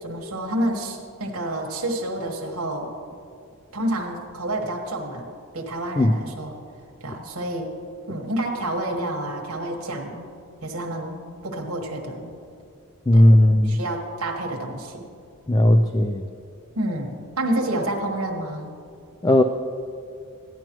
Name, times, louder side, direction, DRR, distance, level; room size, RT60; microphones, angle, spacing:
voice 1, 0.0-2.9 3.7-5.3 5.5-6.5 7.0-7.7 8.1-10.3 10.6-12.3 13.1-13.3 13.6-15.1 16.7-18.7, right 1 dB, 75° right, 0 dB, 1.5 m, -29 dB
voice 2, 13.1-13.8 15.5-16.2 19.2-19.4, left 1 dB, 15° left, 7 dB, 0.3 m, -16 dB
16.0 x 10.5 x 3.0 m, 2.4 s
head